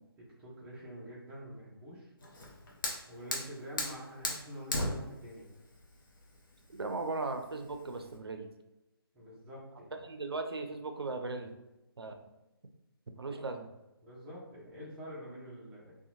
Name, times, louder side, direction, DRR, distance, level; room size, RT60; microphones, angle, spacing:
voice 1, 0.2-2.1 3.1-5.5 9.1-10.0 13.2-13.4 14.0-16.0, equal, 5° right, -7 dB, 0.4 m, -47 dB
Fire, 2.2-8.2, left 1 dB, 55° left, 0.6 m, -39 dB
voice 2, 6.7-8.5 10.0-11.6 12.0-12.2 13.2-13.7, right 3 dB, 75° right, 6 dB, 0.4 m, -37 dB
2.8 x 2.1 x 2.5 m, 0.97 s
figure-of-eight pair, 150°, 13 cm